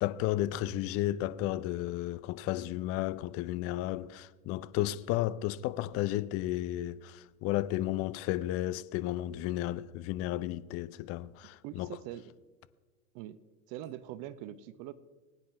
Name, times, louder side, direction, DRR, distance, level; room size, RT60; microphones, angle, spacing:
voice 1, 0.0-11.9, left 14 dB, 35° left, 0.5 m, -33 dB
voice 2, 11.6-12.3 13.1-13.4 13.7-14.9, right 12 dB, 45° right, 0.8 m, -43 dB
20.0 x 9.3 x 3.3 m
hypercardioid pair, 90°, 42 cm